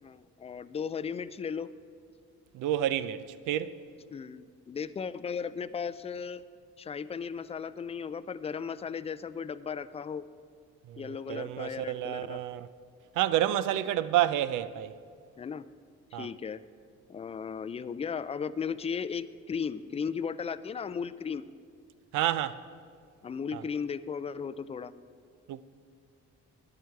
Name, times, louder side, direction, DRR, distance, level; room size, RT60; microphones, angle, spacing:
voice 1, 0.0-1.7 4.1-6.4 6.8-10.2 11.0-12.4 15.4-15.6 16.1-16.6 17.1-21.5 23.2-24.9, left 6 dB, 20° left, 0.3 m, -36 dB
voice 2, 2.5-3.8 10.9-12.7 13.1-14.9 16.1-16.3 22.1-22.6 23.5-23.6 25.5-25.6, right 12 dB, 90° right, 0.5 m, -29 dB
12.5 x 9.8 x 4.6 m
cardioid pair, 90°, 30 cm